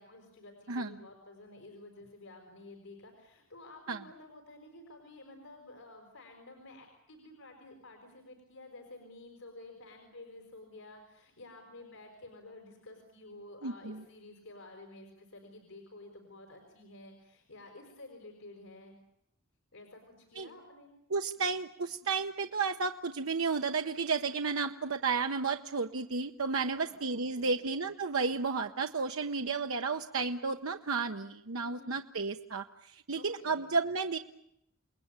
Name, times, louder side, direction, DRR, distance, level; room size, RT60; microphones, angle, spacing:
voice 1, 0.0-18.9 19.7-20.9 26.5-27.6 31.6-31.9 33.1-33.7, left 2 dB, 85° left, 3 dB, 5.2 m, -52 dB
voice 2, 13.6-14.0 20.4-20.5 21.1-34.2, right 4 dB, 90° right, 5 dB, 1.0 m, -32 dB
29.0 x 20.5 x 8.9 m, 0.77 s
head